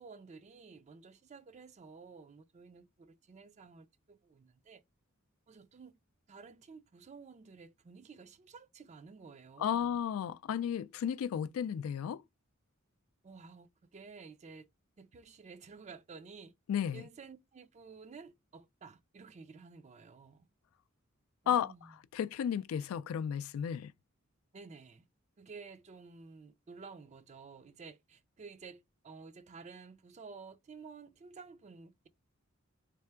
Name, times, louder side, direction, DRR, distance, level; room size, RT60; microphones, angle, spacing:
voice 1, 0.0-4.8 5.5-6.0 6.3-10.0 13.2-14.7 15.0-16.5 16.9-20.5 21.4-21.9 24.5-25.1 25.4-32.1, right 4 dB, 35° right, 0.4 m, -52 dB
voice 2, 9.6-12.2 16.7-17.0 21.5-21.7 22.1-23.9, left 8 dB, 80° left, 0.3 m, -33 dB
3.6 x 3.4 x 3.3 m
head